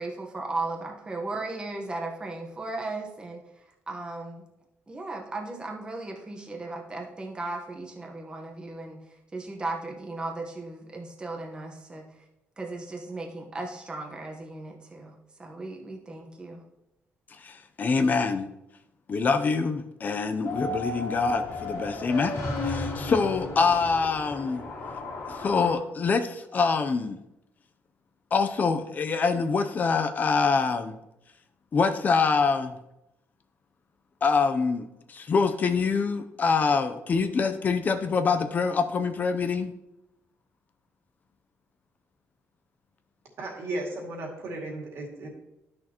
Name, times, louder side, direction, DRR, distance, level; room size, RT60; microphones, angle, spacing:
voice 1, 0.0-4.4 4.9-9.0 9.3-12.1 12.6-16.6, right 2 dB, 20° right, 1 dB, 1.1 m, -36 dB
voice 2, 17.4-18.5 19.1-24.7 25.2-27.2 28.3-30.9 31.7-32.7 34.2-39.7, left 5 dB, 35° left, 9 dB, 0.5 m, -25 dB
sound 1, 20.4-25.7, left 2 dB, 80° left, 2.1 m, -34 dB
voice 3, 43.4-45.3, right 2 dB, 65° right, -1 dB, 2.2 m, -35 dB
11.0 x 6.3 x 3.0 m, 0.88 s
cardioid pair, 140°, 5 cm